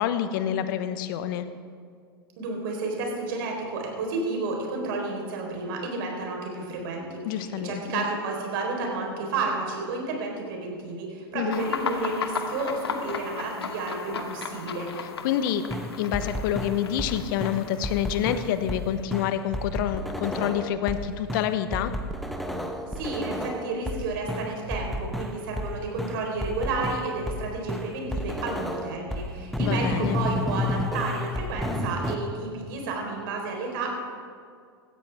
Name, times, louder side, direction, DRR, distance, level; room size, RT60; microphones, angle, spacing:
voice 1, 0.0-1.4 7.3-8.0 11.3-11.7 15.2-15.6 16.0-21.9 29.6-30.2, left 10 dB, 55° left, 11 dB, 1.0 m, -27 dB
voice 2, 2.4-14.9 23.0-33.9, right 3 dB, 60° right, 1 dB, 4.0 m, -31 dB
sound 1, 11.5-19.0, left 6 dB, 80° left, 1.0 m, -36 dB
sound 2, 15.7-17.1 17.4-18.8 19.1-21.0 21.3-24.0 24.3-25.7 26.0-27.4 27.7-29.2 29.5-32.2, left 1 dB, ahead, 1.2 m, -31 dB
17.5 x 13.0 x 3.5 m, 2.2 s
hypercardioid pair, 95°, 13 cm